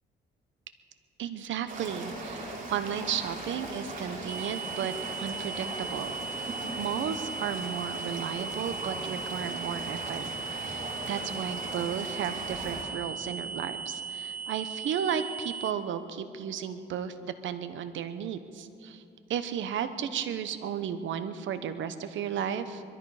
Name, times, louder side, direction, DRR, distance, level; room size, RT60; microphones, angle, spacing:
voice 1, 1.2-10.3 10.6-19.0 19.3-22.8, right 8 dB, 70° right, 10 dB, 1.0 m, -34 dB
sound 1, 1.7-12.8, right 2 dB, 40° right, 3.7 m, -39 dB
sound 2, 4.3-15.7, right 5 dB, 10° right, 0.8 m, -38 dB
22.0 x 13.5 x 4.9 m, 2.5 s
cardioid pair, 90°, 20 cm